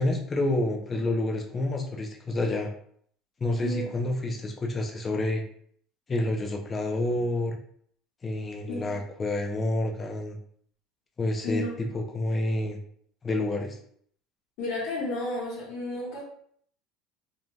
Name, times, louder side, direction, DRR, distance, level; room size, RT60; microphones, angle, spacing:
voice 1, 0.0-2.7 3.4-5.4 6.1-7.6 8.2-10.4 11.2-12.8 13.2-13.8, left 1 dB, 20° left, 2 dB, 0.4 m, -28 dB
voice 2, 14.6-16.2, left 1 dB, 70° left, -8 dB, 1.0 m, -32 dB
2.6 x 2.1 x 3.1 m, 0.63 s
cardioid pair, 145°, 0 cm